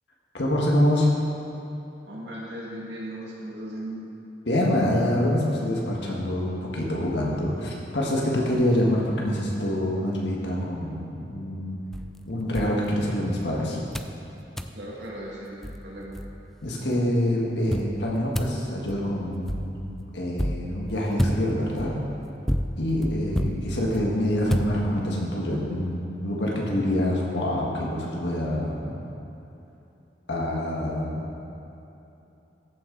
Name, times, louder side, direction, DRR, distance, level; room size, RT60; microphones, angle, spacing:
voice 1, 0.3-1.1 4.5-11.8 12.3-13.8 16.6-19.8 20.1-21.9 22.8-29.0 30.3-31.3, left 1 dB, 75° left, -3 dB, 1.7 m, -26 dB
voice 2, 2.0-4.0 14.7-16.2, right 1 dB, 75° right, -5 dB, 2.2 m, -37 dB
sound 1, 11.9-13.5 13.9-14.2 14.6-14.8 15.3-15.4 15.6-16.7 17.7-25.3, equal, ahead, 0.3 m, -31 dB
14.5 x 6.4 x 4.0 m, 2.9 s
head